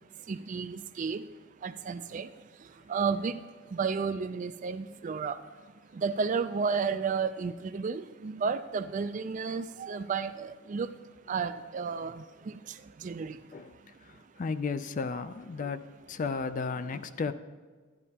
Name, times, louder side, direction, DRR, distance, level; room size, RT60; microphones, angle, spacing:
voice 1, 0.3-1.2 1.6-2.3 2.9-3.4 3.7-5.4 6.0-10.9 11.3-12.2 13.0-13.4, right 5 dB, 40° right, 12 dB, 0.3 m, -32 dB
voice 2, 14.4-15.8 16.1-17.3, left 4 dB, 40° left, 12 dB, 0.3 m, -33 dB
12.0 x 11.0 x 2.8 m, 1.4 s
head